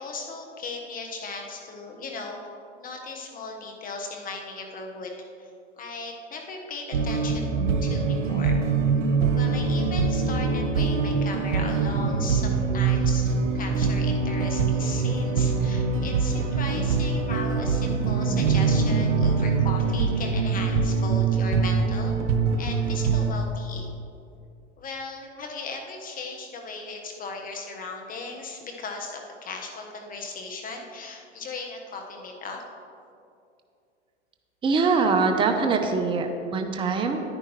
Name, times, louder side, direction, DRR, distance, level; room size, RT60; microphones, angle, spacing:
voice 1, 0.0-2.4 2.8-5.1 5.4-5.5 5.8-7.5 7.8-8.6 9.3-22.2 22.6-24.0 24.8-32.6, left 3 dB, 25° left, 2 dB, 1.2 m, -37 dB
sound 1, 6.9-23.3, right 4 dB, 85° right, 0.8 m, -24 dB
voice 2, 34.6-37.3, right 4 dB, 15° right, 5 dB, 0.6 m, -23 dB
10.0 x 9.8 x 3.1 m, 2.5 s
hypercardioid pair, 105°, 35 cm